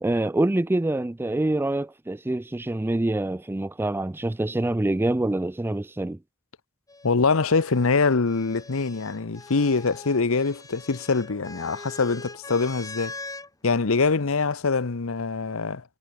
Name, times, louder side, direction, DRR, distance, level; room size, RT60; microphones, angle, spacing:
voice 1, 0.0-6.2, right 1 dB, 10° right, 0.3 m, -25 dB
sound 1, 6.9-13.5 14.6-15.2, left 3 dB, 15° left, 3.4 m, -43 dB
voice 2, 7.0-13.1 13.6-15.8, left 4 dB, 70° left, 0.9 m, -24 dB
head